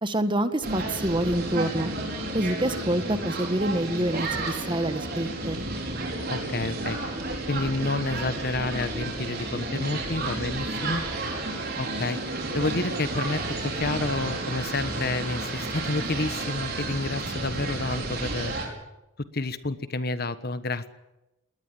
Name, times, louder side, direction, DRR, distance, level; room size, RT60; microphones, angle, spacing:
voice 1, 0.0-1.9 2.3-5.6, right 1 dB, 25° right, 10 dB, 1.5 m, -27 dB
sound 1, 0.6-18.7, right 2 dB, 50° right, 5.9 m, -32 dB
voice 2, 6.3-7.1 7.5-11.1 11.8-18.5 19.3-20.9, left 2 dB, 50° left, 12 dB, 1.3 m, -29 dB
21.0 x 19.0 x 9.4 m, 0.94 s
head